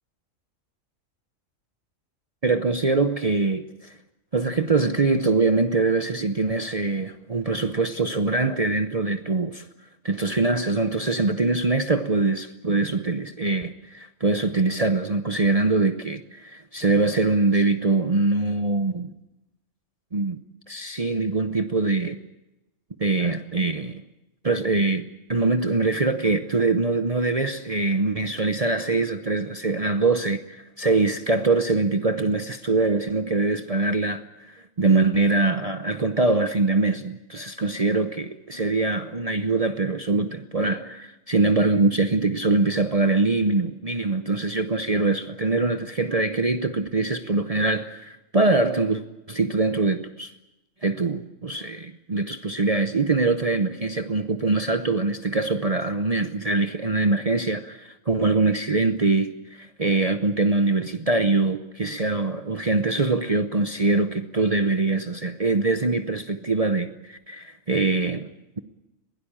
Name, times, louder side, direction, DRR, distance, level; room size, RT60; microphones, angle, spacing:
voice 1, 2.4-4.0 4.3-9.7 10.0-19.1 20.1-20.4 20.7-22.2 23.0-24.0 24.4-49.0 49.3-50.3 50.8-68.3, right 3 dB, 35° right, 0.8 m, -23 dB
21.5 x 17.0 x 8.8 m
omnidirectional pair, 1.4 m